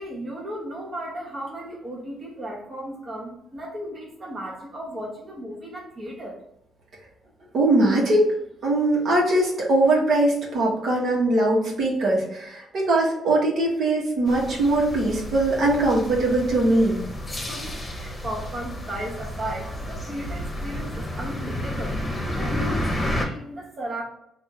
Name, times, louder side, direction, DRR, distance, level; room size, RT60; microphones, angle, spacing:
voice 1, 0.0-6.3 17.5-21.9 22.4-24.0, right 1 dB, 40° right, -3 dB, 1.0 m, -35 dB
voice 2, 7.5-8.3 8.6-17.0, right 2 dB, 65° right, -3 dB, 1.3 m, -21 dB
sound 1, 14.3-23.2, left 1 dB, 20° left, 1.0 m, -31 dB
3.5 x 2.6 x 4.4 m, 0.78 s
cardioid pair, 90°, 0 cm